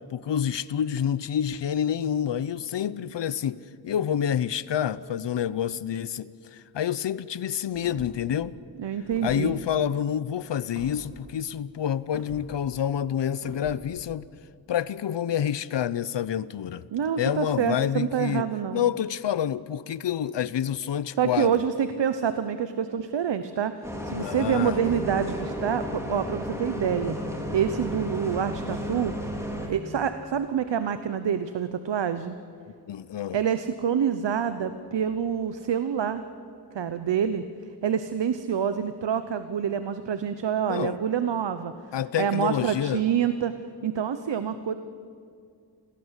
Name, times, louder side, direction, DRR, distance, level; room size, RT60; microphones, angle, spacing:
voice 1, 0.1-3.6 3.8-8.6 9.2-14.3 14.7-16.8 17.2-18.5 18.7-21.5 24.1-25.0 32.9-33.4 40.7-41.0 41.9-43.0, left 9 dB, 90° left, 18 dB, 0.8 m, -28 dB
sound 1, 7.7-8.3 9.0-9.5 10.8-11.0 12.1-12.5 13.4-13.8, right 2 dB, 55° right, 3.6 m, -44 dB
voice 2, 8.8-9.5 16.9-18.8 21.2-27.2 27.5-29.2 29.6-32.3 33.3-36.2 36.7-37.5 37.8-41.7 42.2-43.5 43.8-44.7, right 8 dB, 85° right, 11 dB, 1.0 m, -27 dB
Bus, 23.8-29.7, equal, 5° right, 3.7 m, -33 dB
27.0 x 18.0 x 8.2 m, 2.3 s
wide cardioid pair, 110°, 42 cm